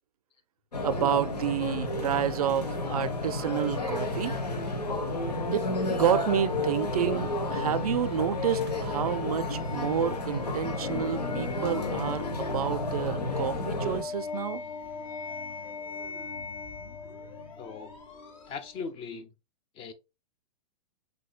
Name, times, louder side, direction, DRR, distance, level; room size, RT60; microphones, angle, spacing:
sound 1, 0.7-14.0, left 2 dB, 85° left, 0.9 m, -32 dB
voice 1, 0.8-4.4 5.5-14.6, right 9 dB, 65° right, 0.4 m, -29 dB
sound 2, 1.4-18.9, left 5 dB, 50° left, 1.1 m, -40 dB
voice 2, 17.6-17.9 18.5-19.3 19.8-19.9, left 5 dB, 25° left, 0.5 m, -39 dB
6.0 x 2.7 x 2.2 m
figure-of-eight pair, 110°, 20 cm